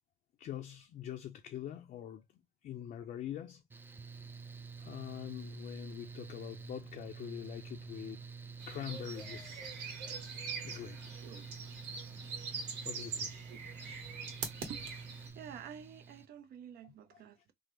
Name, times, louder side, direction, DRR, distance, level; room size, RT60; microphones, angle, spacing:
voice 1, 0.4-2.2 2.6-3.6 4.8-8.2 8.7-9.6 10.6-11.0 12.8-13.3 16.8-17.2, left 10 dB, 55° left, 0.5 m, -44 dB
Mechanical fan, 3.7-16.3, right 5 dB, 10° right, 0.3 m, -49 dB
sound 1, 8.6-15.3, right 5 dB, 85° right, 1.1 m, -43 dB
voice 2, 15.3-17.5, right 8 dB, 65° right, 0.6 m, -49 dB
3.5 x 2.0 x 3.0 m
cardioid pair, 110°, 17 cm